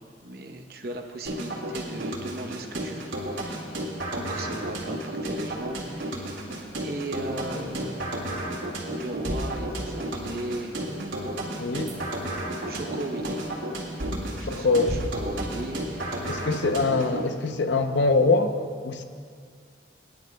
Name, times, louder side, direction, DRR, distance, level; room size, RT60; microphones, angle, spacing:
voice 1, 0.2-3.6 4.1-6.4 6.8-8.3 9.0-10.8 12.7-13.5 14.0-16.4, right 2 dB, 50° right, 4 dB, 0.8 m, -37 dB
sound 1, 1.3-17.3, right 1 dB, 85° right, 2.0 m, -32 dB
sound 2, 5.3-17.2, equal, 30° right, 2.3 m, -49 dB
voice 2, 11.6-12.0 14.4-15.0 16.3-18.6 18.8-19.0, left 3 dB, 75° left, 8 dB, 0.7 m, -23 dB
22.5 x 10.5 x 2.3 m, 2.2 s
head